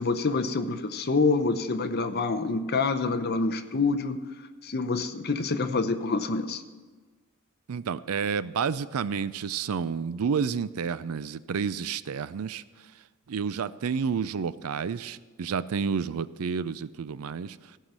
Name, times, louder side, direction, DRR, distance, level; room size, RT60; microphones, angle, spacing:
voice 1, 0.0-4.2 4.6-6.6, left 3 dB, 45° left, 9 dB, 0.8 m, -27 dB
voice 2, 7.7-12.6 13.3-17.6, right 6 dB, 75° right, 17 dB, 0.4 m, -30 dB
16.0 x 5.7 x 7.4 m, 1.4 s
head